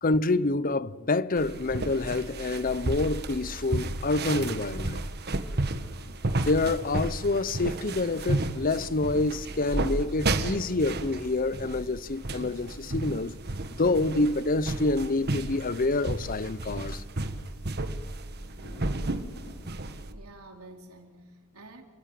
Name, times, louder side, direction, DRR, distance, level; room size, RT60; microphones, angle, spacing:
voice 1, 0.0-5.1 6.4-13.3 13.8-17.0, left 2 dB, 40° left, 0.7 m, -27 dB
sound 1, 1.4-20.1, right 2 dB, 50° right, 1.5 m, -33 dB
sound 2, 9.5-19.7, left 1 dB, 85° left, 7.0 m, -57 dB
voice 2, 20.0-21.8, right 2 dB, 90° right, 3.9 m, -49 dB
28.5 x 17.0 x 9.1 m
head